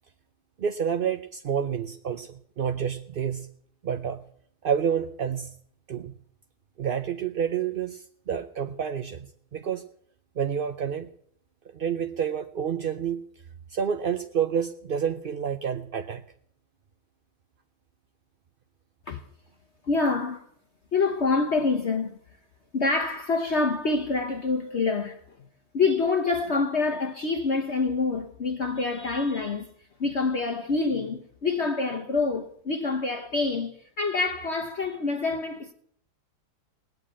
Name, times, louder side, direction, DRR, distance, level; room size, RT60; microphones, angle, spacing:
voice 1, 0.6-3.5 3.8-4.2 4.6-5.5 5.9-6.1 6.8-9.8 10.4-11.1 11.7-13.2 13.7-16.2, right 8 dB, 60° right, 0.5 m, -29 dB
voice 2, 19.8-20.4 20.9-22.2 22.7-25.2 25.7-29.7 30.0-35.7, left 4 dB, 45° left, 1.2 m, -26 dB
18.0 x 7.9 x 8.7 m
omnidirectional pair, 1.8 m